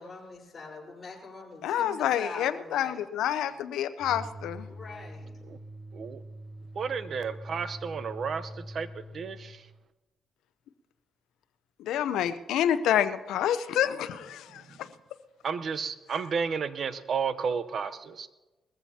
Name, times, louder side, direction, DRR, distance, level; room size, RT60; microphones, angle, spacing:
voice 1, 0.0-3.0 4.7-5.4, left 3 dB, 35° left, -3 dB, 4.3 m, -43 dB
voice 2, 1.6-4.7 11.8-14.6, left 10 dB, 85° left, 13 dB, 0.6 m, -28 dB
sound 1, 4.0-9.6, equal, 30° right, 1.3 m, -44 dB
voice 3, 6.8-8.9 9.1-9.6 15.4-18.3, right 6 dB, 55° right, 13 dB, 0.8 m, -32 dB
20.5 x 14.5 x 2.8 m, 1.1 s
cardioid pair, 90°, 0 cm